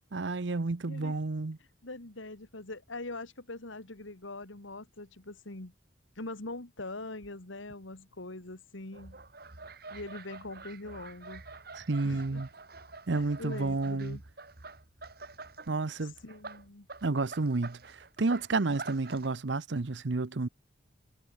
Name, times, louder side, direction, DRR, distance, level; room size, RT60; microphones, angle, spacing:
voice 1, 0.1-1.6 11.8-12.5 13.1-14.2 15.7-16.1 17.0-20.5, right 3 dB, 65° right, 0.8 m, -31 dB
voice 2, 1.8-5.7 6.2-9.2 9.9-11.4 12.0-12.4 13.1-14.2 16.2-16.9, left 2 dB, 80° left, 2.3 m, -42 dB
sound 1, 8.9-15.7 16.1-19.3, right 3 dB, 50° right, 1.9 m, -47 dB
head